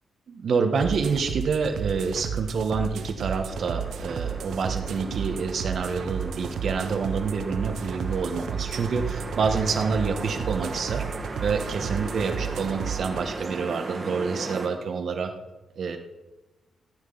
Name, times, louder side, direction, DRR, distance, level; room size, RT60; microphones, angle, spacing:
voice 1, 0.3-11.0 11.4-15.3 15.7-16.0, right 5 dB, 50° right, 6 dB, 1.7 m, -27 dB
sound 1, 0.8-13.2, right 7 dB, 80° right, 1.1 m, -33 dB
sound 2, 3.5-14.7, right 3 dB, 25° right, 2.0 m, -37 dB
15.0 x 6.5 x 9.8 m, 1.1 s
wide cardioid pair, 180°, 0 cm